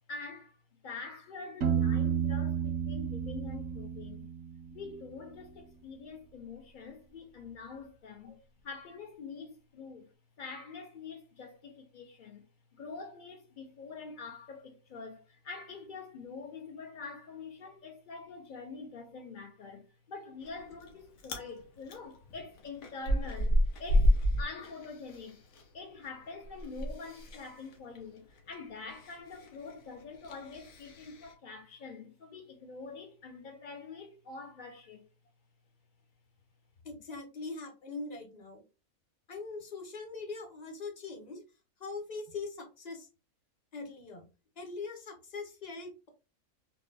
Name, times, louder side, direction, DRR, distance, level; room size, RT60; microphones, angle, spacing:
voice 1, 0.1-0.6 0.8-4.3 4.7-8.4 8.6-10.1 10.4-12.5 12.7-25.4 25.7-35.1, left 4 dB, 85° left, 0.4 m, -45 dB
Piano, 1.6-5.3, right 8 dB, 65° right, 0.6 m, -32 dB
Chewing mastication, 20.4-20.9 21.2-21.5 21.9-25.6 25.9-31.3, equal, 70° left, 1.1 m, -31 dB
voice 2, 36.8-38.6 39.3-41.4 41.8-43.1 43.7-44.3 44.6-46.1, left 3 dB, 40° left, 0.6 m, -42 dB
3.9 x 2.2 x 2.6 m
omnidirectional pair, 1.6 m